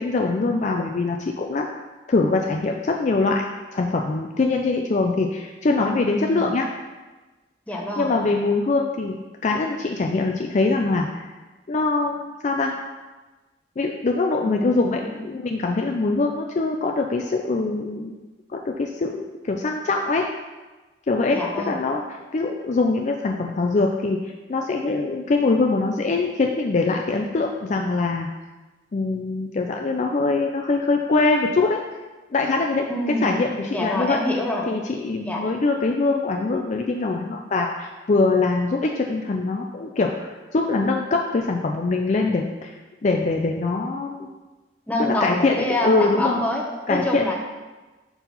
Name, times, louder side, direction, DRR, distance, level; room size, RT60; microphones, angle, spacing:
voice 1, 0.0-1.6 2.1-3.4 3.7-6.7 8.0-11.3 11.7-12.7 13.8-18.1 18.5-19.1 19.4-20.3 21.1-28.3 28.9-31.8 32.3-34.2 34.7-44.3 45.0-46.4 46.9-47.3, left 3 dB, 40° left, 2 dB, 0.4 m, -23 dB
voice 2, 6.2-6.6 7.7-8.1 14.4-15.3 21.3-21.8 32.9-33.3 33.7-34.6 35.2-35.4 44.9-47.3, left 1 dB, 10° left, -1 dB, 0.9 m, -26 dB
5.5 x 4.6 x 5.4 m, 1.2 s
head